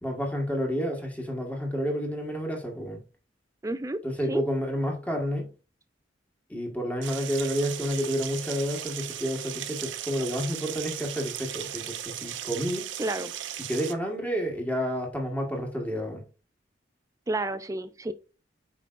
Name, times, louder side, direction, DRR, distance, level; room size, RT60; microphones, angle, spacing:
voice 1, 0.0-3.0 4.0-5.5 6.5-12.9 13.7-16.2, equal, 10° left, 1.6 m, -30 dB
voice 2, 3.6-4.0 4.3-4.4 13.0-13.3 17.3-18.1, right 2 dB, 15° right, 0.4 m, -30 dB
sound 1, 7.0-13.9, right 11 dB, 75° right, 0.7 m, -37 dB
8.4 x 5.3 x 2.5 m
head